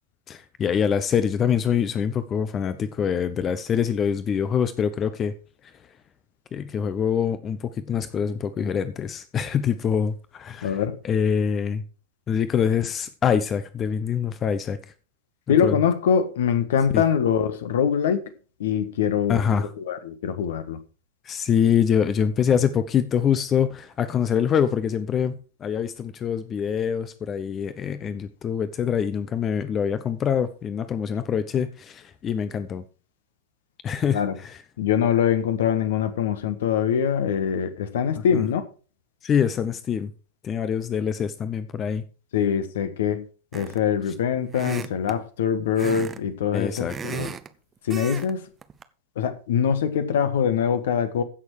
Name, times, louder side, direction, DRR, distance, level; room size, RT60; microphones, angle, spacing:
voice 1, 0.3-5.3 5.6-5.7 6.5-11.8 12.3-14.8 15.6-15.8 16.9-17.0 19.3-19.7 21.2-32.8 33.8-34.6 38.2-38.4 39.2-40.1 40.4-42.0 46.5-46.9, left 8 dB, 25° left, 0.8 m, -25 dB
voice 2, 10.6-10.9 15.5-18.2 18.6-19.4 19.8-20.8 34.1-34.4 34.8-38.6 42.3-43.3 43.5-47.3 47.8-48.5 49.1-51.2, left 8 dB, 60° left, 1.5 m, -23 dB
sound 1, 43.5-43.9 44.5-45.2 45.8-46.2 46.5-47.5 47.9-48.3 48.6-48.8, right 7 dB, 20° right, 0.8 m, -35 dB
15.5 x 6.5 x 4.8 m
figure-of-eight pair, 90°, 0 cm